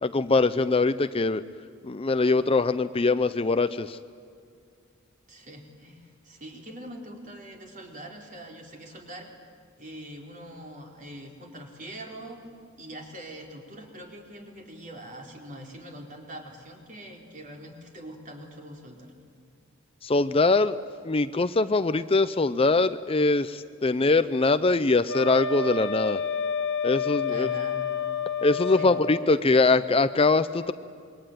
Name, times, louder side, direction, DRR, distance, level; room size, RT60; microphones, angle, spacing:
voice 1, 0.0-1.4 1.8-4.0 20.0-20.8 21.0-26.2 26.8-27.5 28.4-30.7, left 3 dB, 30° left, 12 dB, 0.6 m, -22 dB
voice 2, 5.3-9.3 9.8-12.5 12.8-19.1 27.3-27.9 28.7-29.1, right 1 dB, 40° right, 1 dB, 4.2 m, -43 dB
Wind instrument woodwind instrument, 25.1-29.3, left 5 dB, 65° left, 1.6 m, -29 dB
27.0 x 22.5 x 9.2 m, 2.3 s
head